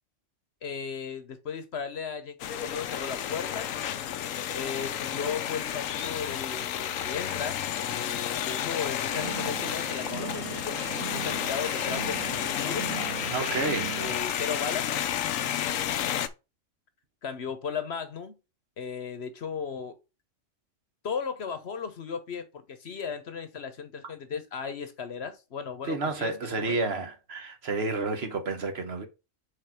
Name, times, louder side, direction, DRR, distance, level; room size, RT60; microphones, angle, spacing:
voice 1, 0.6-3.7 4.5-12.9 13.5-13.6 14.0-15.0 17.2-18.4 18.8-20.0 21.0-26.8, left 6 dB, 55° left, 1.1 m, -36 dB
sound 1, 2.4-16.3, left 10 dB, 85° left, 1.1 m, -31 dB
sound 2, 9.1-14.2, right 7 dB, 75° right, 1.2 m, -39 dB
voice 2, 13.3-14.0 25.8-29.1, right 3 dB, 55° right, 1.3 m, -30 dB
5.1 x 4.0 x 5.8 m
omnidirectional pair, 1.3 m